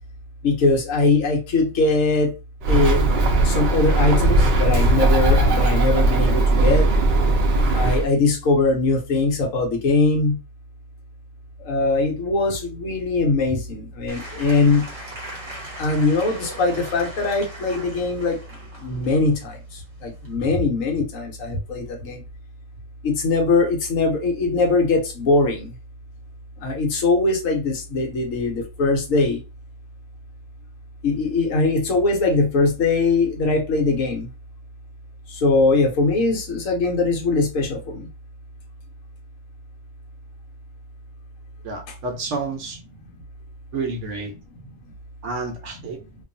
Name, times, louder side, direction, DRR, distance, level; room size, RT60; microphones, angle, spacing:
voice 1, 0.4-2.3 2.7-3.0 3.4-6.9 7.7-10.4 11.6-14.9 15.8-18.4 18.8-22.2 23.0-25.7 26.6-29.4 31.0-34.3 35.3-38.1 44.8-44.9, left 3 dB, 70° left, 1.2 m, -21 dB
Bird, 2.6-8.1, right 2 dB, 85° right, 0.4 m, -18 dB
Applause / Crowd, 14.1-20.4, right 1 dB, 30° right, 0.8 m, -39 dB
voice 2, 41.6-42.8 43.7-44.3 45.2-46.0, right 3 dB, 65° right, 0.9 m, -29 dB
2.6 x 2.3 x 2.5 m
omnidirectional pair, 1.4 m